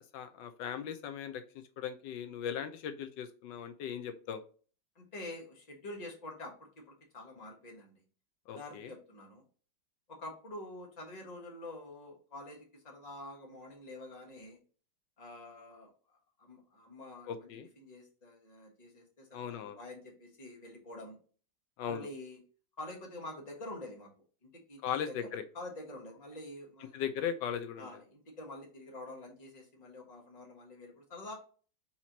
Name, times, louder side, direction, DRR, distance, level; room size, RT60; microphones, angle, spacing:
voice 1, 0.0-4.4 8.5-8.9 17.3-17.7 19.3-19.8 21.8-22.1 24.8-25.4 26.9-27.9, left 8 dB, 85° left, 8 dB, 1.2 m, -38 dB
voice 2, 4.9-8.0 8.5-9.4 10.1-14.6 15.2-15.9 16.4-17.5 17.8-21.2 21.9-22.4 22.8-24.1 24.4-25.2 25.5-27.0 27.8-31.3, left 2 dB, 25° left, 0 dB, 1.3 m, -47 dB
4.3 x 4.3 x 2.7 m, 0.39 s
omnidirectional pair, 1.9 m